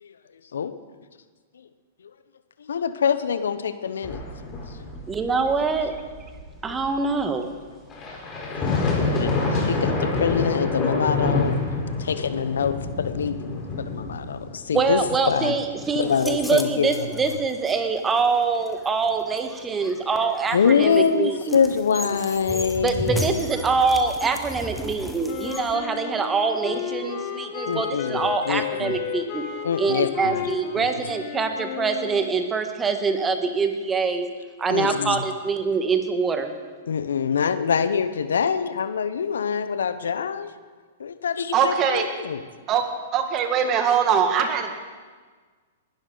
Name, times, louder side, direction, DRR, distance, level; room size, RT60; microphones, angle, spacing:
voice 1, 2.6-4.2 8.6-11.6 12.0-15.0 15.3-15.5 15.9-17.4 20.5-23.4 27.6-29.0 29.6-30.5 34.7-35.2 36.9-40.5 41.0-42.4, left 6 dB, 75° left, 12 dB, 0.8 m, -25 dB
sound 1, 4.0-7.2 7.9-16.5, left 3 dB, 25° left, 4.2 m, -28 dB
voice 2, 5.1-5.9 6.6-7.5 14.7-21.6 22.8-29.4 29.8-34.3 34.6-36.5, right 4 dB, 15° right, 6 dB, 1.5 m, -24 dB
sound 2, 16.0-25.8, equal, 5° left, 1.2 m, -36 dB
Wind instrument woodwind instrument, 25.2-32.4, left 10 dB, 45° left, 1.9 m, -33 dB
voice 3, 41.5-42.1 42.7-42.8 43.1-44.7, right 7 dB, 35° right, 5 dB, 1.9 m, -21 dB
20.5 x 11.5 x 4.0 m, 1.5 s
hypercardioid pair, 115°, 0 cm